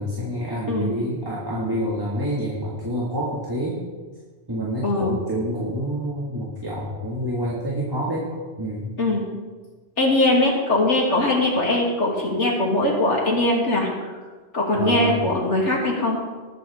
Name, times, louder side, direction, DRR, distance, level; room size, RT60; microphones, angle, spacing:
voice 1, 0.0-3.8 4.5-8.3 8.6-9.0 14.7-15.2, right 1 dB, 20° right, -4 dB, 1.9 m, -27 dB
voice 2, 10.0-13.9 14.5-16.2, left 2 dB, 85° left, -2 dB, 3.0 m, -21 dB
20.0 x 8.9 x 3.6 m, 1.4 s
omnidirectional pair, 1.2 m